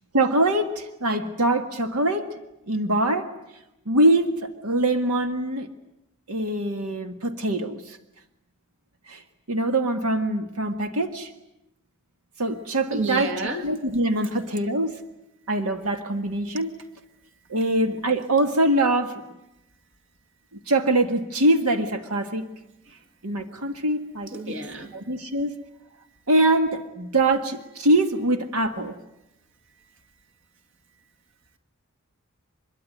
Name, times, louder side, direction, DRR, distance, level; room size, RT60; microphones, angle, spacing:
voice 1, 0.1-2.3 2.7-3.3 3.9-5.7 6.3-8.0 9.1-9.2 9.5-11.3 12.4-13.3 13.6-15.0 15.5-16.7 17.5-19.2 20.7-22.5 23.2-24.6 24.9-25.5 26.3-29.0, right 1 dB, 90° right, 6 dB, 1.8 m, -23 dB
voice 2, 12.9-13.6 22.9-23.0 24.3-25.0, right 2 dB, 55° right, 6 dB, 2.4 m, -31 dB
25.0 x 22.5 x 9.4 m, 0.87 s
head